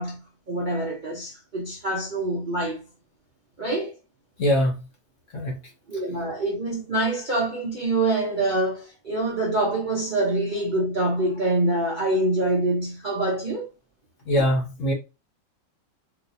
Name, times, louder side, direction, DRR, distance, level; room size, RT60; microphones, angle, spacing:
voice 1, 0.0-2.8 3.6-3.9 5.4-5.5 5.9-13.7, right 2 dB, 45° right, 0.6 m, -25 dB
voice 2, 4.4-4.7 5.3-5.6 14.3-14.9, equal, 55° left, 1.0 m, -22 dB
3.9 x 2.4 x 2.6 m
omnidirectional pair, 1.9 m